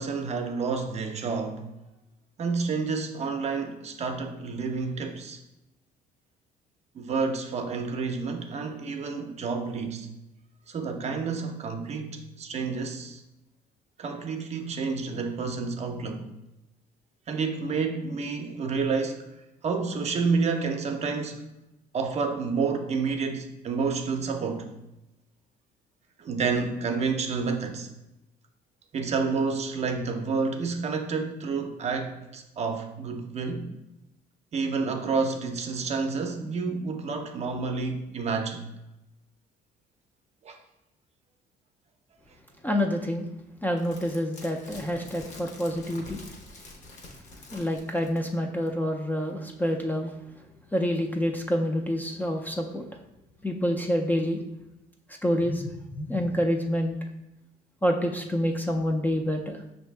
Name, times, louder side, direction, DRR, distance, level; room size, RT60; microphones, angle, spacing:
voice 1, 0.0-1.7 2.4-5.4 6.9-10.1 10.7-13.2 14.0-16.3 17.3-19.2 19.6-21.5 21.9-24.7 26.2-27.9 28.9-33.7 34.5-38.6 40.4-40.6, right 4 dB, 40° right, 5 dB, 0.5 m, -29 dB
voice 2, 42.6-43.3 43.6-46.2 47.5-50.1 50.7-52.8 53.4-54.4 55.2-57.0 57.8-59.6, equal, 10° left, 2 dB, 0.4 m, -27 dB
sound 1, 43.8-48.4 48.7-48.8, left 2 dB, 45° left, 0.8 m, -46 dB
5.6 x 2.7 x 3.2 m, 0.92 s
cardioid pair, 110°, 17 cm